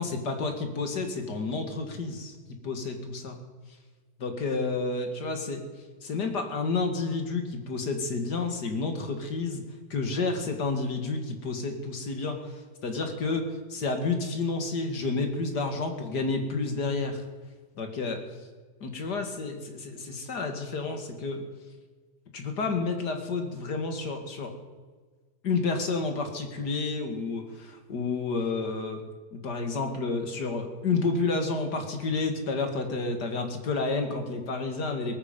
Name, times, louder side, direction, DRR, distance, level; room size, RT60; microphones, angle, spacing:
voice 1, 0.0-3.4 4.2-5.6 6.0-9.6 9.9-17.2 17.8-18.2 18.8-21.4 22.3-24.5 25.4-29.0 29.3-35.2, left 3 dB, 70° left, 5 dB, 2.5 m, -30 dB
18.0 x 14.5 x 5.3 m, 1.4 s
omnidirectional pair, 1.8 m